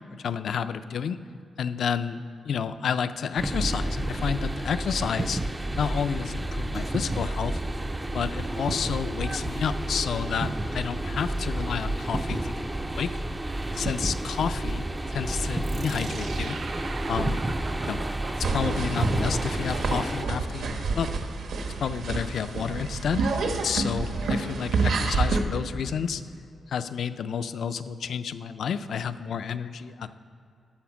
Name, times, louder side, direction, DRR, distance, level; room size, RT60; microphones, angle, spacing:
voice 1, 0.1-1.2 1.6-5.4 5.7-7.6 8.1-13.1 13.6-16.6 17.0-17.5 17.8-18.1 18.4-21.1 21.6-26.2 26.7-30.1, left 7 dB, 60° left, 12 dB, 0.4 m, -30 dB
sound 1, 3.4-20.2, right 1 dB, 10° right, 0.3 m, -30 dB
sound 2, 15.6-20.9, right 5 dB, 55° right, 0.6 m, -41 dB
sound 3, 18.4-25.4, right 3 dB, 75° right, 0.9 m, -28 dB
13.0 x 5.0 x 6.2 m, 2.5 s
wide cardioid pair, 175°, 0 cm